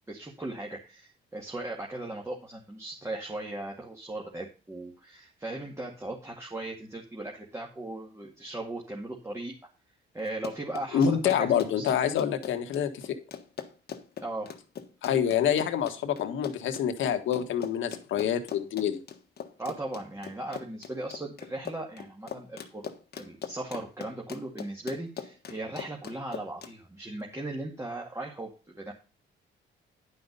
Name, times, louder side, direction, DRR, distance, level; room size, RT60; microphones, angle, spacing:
voice 1, 0.1-9.5 10.1-11.9 14.2-14.5 19.6-22.9 23.2-28.9, right 2 dB, 15° right, -1 dB, 2.2 m, -38 dB
Run, 10.3-26.7, left 7 dB, 55° left, 1.5 m, -41 dB
voice 2, 10.9-13.2 15.0-19.0, left 8 dB, 75° left, 7 dB, 1.6 m, -27 dB
10.5 x 5.8 x 5.3 m, 0.33 s
cardioid pair, 90°, 20 cm